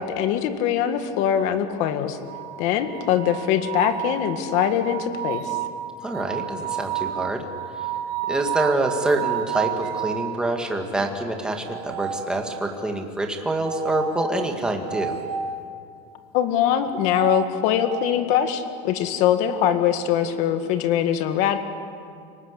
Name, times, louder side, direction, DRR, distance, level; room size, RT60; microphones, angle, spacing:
voice 1, 0.0-2.2 2.6-5.6 16.3-21.6, left 10 dB, 50° left, 8 dB, 1.9 m, -22 dB
sound 1, 2.2-10.3 11.6-12.9 13.6-15.6 16.8-18.2, right 10 dB, 40° right, 1.9 m, -31 dB
voice 2, 6.0-7.4 8.3-15.1, right 2 dB, 5° right, 2 dB, 2.1 m, -26 dB
29.5 x 19.5 x 8.4 m, 2.4 s
cardioid pair, 170°, 15 cm